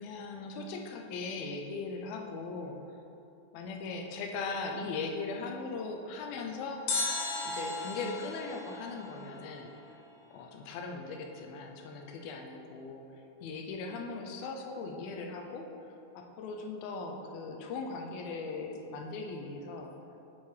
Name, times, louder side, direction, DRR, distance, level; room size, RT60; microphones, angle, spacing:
voice 1, 0.0-2.8 3.5-6.9 7.4-9.7 10.3-13.1 13.4-15.7 16.2-19.9, left 4 dB, 80° left, 3 dB, 2.5 m, -39 dB
sound 1, 6.9-10.0 10.2-10.3, left 3 dB, 65° left, 2.1 m, -36 dB
9.2 x 4.5 x 4.9 m, 2.8 s
omnidirectional pair, 4.3 m